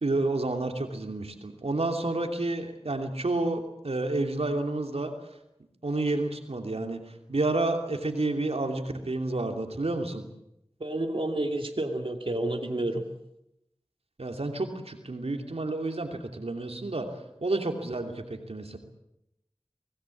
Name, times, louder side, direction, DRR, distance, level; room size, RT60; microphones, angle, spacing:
voice 1, 0.0-5.1 5.8-7.0 7.3-10.2 14.2-17.1 17.4-18.8, right 2 dB, 90° right, 5 dB, 2.8 m, -30 dB
voice 2, 10.8-13.0, right 1 dB, 60° right, 3 dB, 2.4 m, -30 dB
25.0 x 18.0 x 8.5 m, 0.83 s
wide cardioid pair, 50°, 10 cm